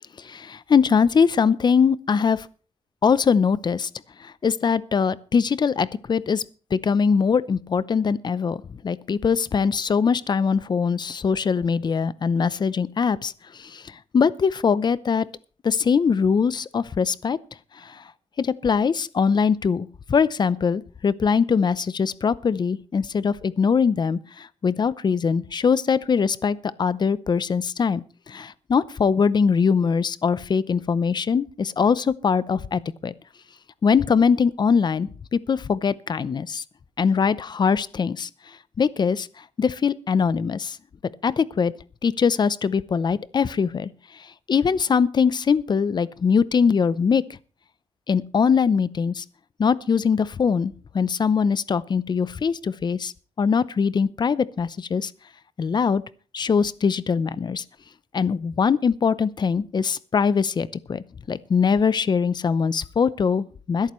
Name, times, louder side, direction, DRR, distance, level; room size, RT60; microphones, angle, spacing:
voice 1, 0.2-2.5 3.0-3.9 4.2-6.4 6.7-15.3 15.6-17.4 17.7-18.0 18.4-33.1 33.8-36.6 37.0-38.3 38.8-40.8 41.2-41.7 42.0-47.2 48.1-49.2 49.6-53.1 53.4-55.1 55.6-56.0 56.3-57.6 58.1-63.9, left 6 dB, 40° left, 0.6 m, -22 dB
21.0 x 11.5 x 3.1 m
wide cardioid pair, 130°, 11 cm